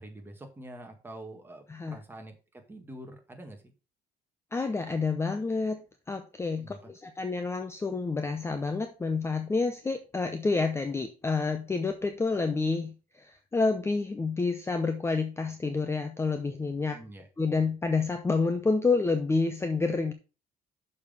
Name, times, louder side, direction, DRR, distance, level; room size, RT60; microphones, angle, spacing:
voice 1, 0.0-3.7 6.6-6.8 16.9-17.3, right 1 dB, 10° right, 3 dB, 1.8 m, -46 dB
voice 2, 4.5-17.0 17.4-20.1, left 4 dB, 15° left, 8 dB, 0.6 m, -29 dB
6.4 x 5.4 x 5.2 m, 0.33 s
cardioid pair, 135°, 17 cm